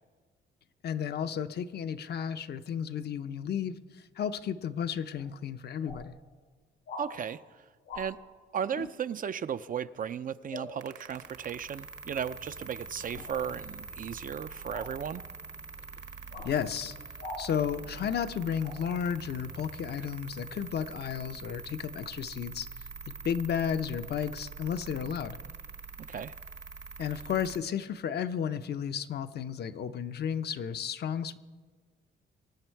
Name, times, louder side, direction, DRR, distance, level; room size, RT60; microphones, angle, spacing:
voice 1, 0.8-6.1 8.8-8.9 16.4-17.0 17.4-22.7 23.2-25.4 27.0-31.4, left 8 dB, 55° left, 10 dB, 0.7 m, -33 dB
sound 1, 5.2-5.3 5.8-6.0 6.9-7.1 7.8-8.1 10.5-10.7 13.1-13.3 14.7-14.9 16.3-16.5 17.2-17.4 18.6-18.8, left 2 dB, 80° left, 2.6 m, -41 dB
voice 2, 7.0-7.4 8.0-8.2 8.5-15.2 26.0-26.3, right 8 dB, 45° right, 12 dB, 0.5 m, -35 dB
sound 2, 10.8-27.6, right 5 dB, 65° right, 1.3 m, -45 dB
23.5 x 8.8 x 4.6 m, 1.5 s
cardioid pair, 90°, 20 cm